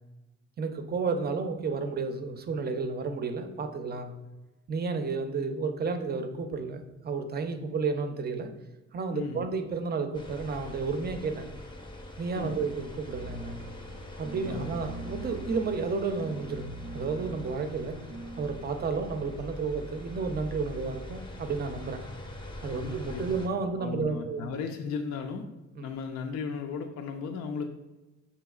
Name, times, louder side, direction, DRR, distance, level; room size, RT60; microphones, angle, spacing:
voice 1, 0.6-4.1 4.7-8.5 8.9-11.5 12.2-13.6 14.2-18.0 18.4-22.0 22.6-24.5 25.8-26.0, right 4 dB, 30° right, 7 dB, 0.5 m, -32 dB
voice 2, 9.1-9.5 12.3-12.6 14.4-14.8 22.7-23.3 23.8-25.5 25.8-27.6, left 5 dB, 60° left, 4 dB, 0.4 m, -36 dB
sound 1, 10.1-23.5, left 1 dB, 15° left, 0.6 m, -44 dB
sound 2, 13.1-19.6, right 2 dB, 85° right, 0.6 m, -44 dB
6.1 x 2.8 x 2.3 m, 1.1 s
cardioid pair, 90°, 30 cm